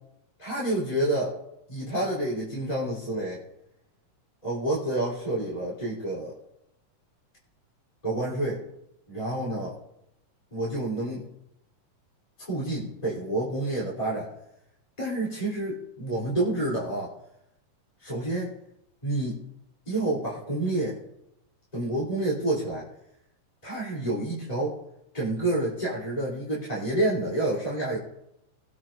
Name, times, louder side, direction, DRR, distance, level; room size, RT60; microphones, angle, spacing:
voice 1, 0.4-1.4 1.7-3.4 4.4-6.3 8.0-8.6 9.1-9.8 10.5-11.2 12.4-14.3 15.0-17.1 18.0-18.5 19.0-19.4 19.9-21.0 21.7-22.8 23.6-24.8 25.1-28.0, right 1 dB, 15° left, -7 dB, 2.7 m, -28 dB
21.0 x 8.5 x 2.5 m, 0.82 s
omnidirectional pair, 3.5 m